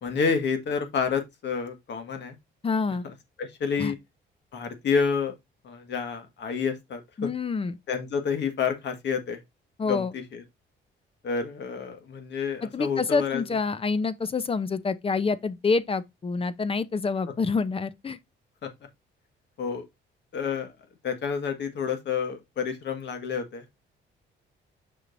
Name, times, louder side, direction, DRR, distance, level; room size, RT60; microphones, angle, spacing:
voice 1, 0.0-2.3 3.0-3.1 3.4-4.0 4.5-5.3 5.6-7.3 7.9-9.4 9.9-10.4 11.2-13.4 18.6-18.7 19.6-19.8 20.3-20.7 21.0-23.8, left 6 dB, 65° left, 1.6 m, -29 dB
voice 2, 2.6-3.1 3.8-3.9 7.2-7.8 9.8-10.1 12.6-18.2, left 4 dB, 30° left, 0.7 m, -27 dB
6.3 x 6.2 x 2.6 m
cardioid pair, 90°, 20 cm